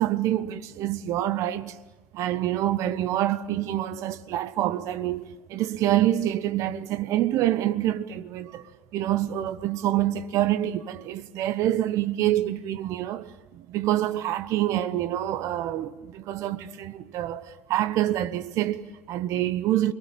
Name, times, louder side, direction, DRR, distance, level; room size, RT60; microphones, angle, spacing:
voice 1, 0.0-1.8 2.1-19.9, right 13 dB, 55° right, 1.0 m, -26 dB
29.5 x 23.0 x 6.8 m
hypercardioid pair, 70°, 7 cm